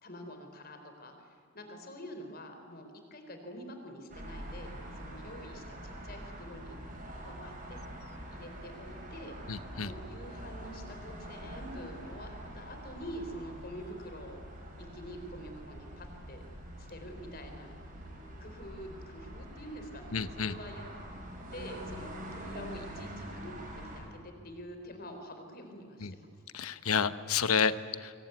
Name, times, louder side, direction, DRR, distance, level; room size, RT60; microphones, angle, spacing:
voice 1, 0.0-6.8 7.1-7.8 8.3-9.4 9.8-14.4 14.8-16.4 16.8-17.8 18.4-20.9 21.5-23.7 23.9-26.3, equal, 45° left, 5 dB, 4.2 m, -46 dB
sound 1, 4.1-24.0, equal, 40° right, 6.7 m, -45 dB
voice 2, 9.5-9.9 20.1-20.6 26.0-26.1 26.5-28.1, left 6 dB, 90° left, 13 dB, 1.0 m, -30 dB
26.0 x 22.5 x 9.5 m, 2.2 s
head